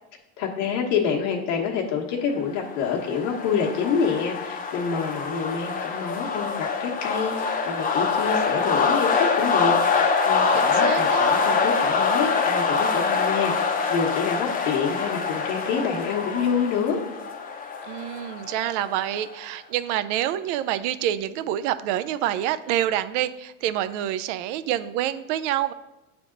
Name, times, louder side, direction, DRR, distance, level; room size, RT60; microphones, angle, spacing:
voice 1, 0.4-17.0, left 6 dB, 80° left, -2 dB, 1.2 m, -27 dB
sound 1, 2.6-19.3, left 5 dB, 25° left, 0.6 m, -25 dB
voice 2, 10.5-11.3 17.9-25.7, right 12 dB, 75° right, 13 dB, 0.5 m, -27 dB
8.4 x 3.5 x 3.8 m, 0.98 s
supercardioid pair, 115°, 36 cm